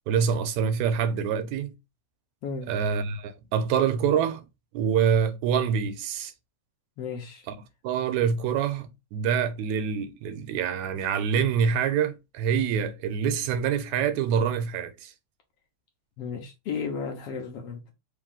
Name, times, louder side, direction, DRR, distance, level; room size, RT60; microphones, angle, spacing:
voice 1, 0.1-1.7 2.7-4.4 4.7-6.3 7.5-7.6 7.8-15.1, right 7 dB, 80° right, 2.0 m, -26 dB
voice 2, 7.0-7.5 16.2-17.9, left 5 dB, 65° left, 1.7 m, -34 dB
4.8 x 3.0 x 3.7 m
omnidirectional pair, 3.4 m